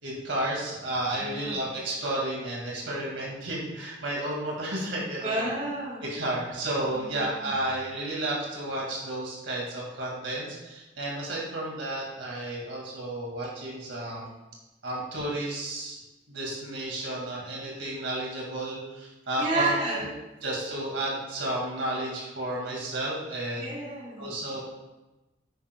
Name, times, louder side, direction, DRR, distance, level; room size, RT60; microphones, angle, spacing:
voice 1, 0.0-5.4 6.0-14.3 14.8-16.0 16.3-20.1 20.4-23.7 24.2-24.6, right 1 dB, 75° right, -3 dB, 2.1 m, -32 dB
voice 2, 1.2-1.6 5.2-6.0 6.9-7.5 19.4-20.0 23.6-24.3, right 2 dB, 40° right, -4 dB, 2.5 m, -30 dB
11.0 x 9.3 x 2.3 m, 1.1 s
head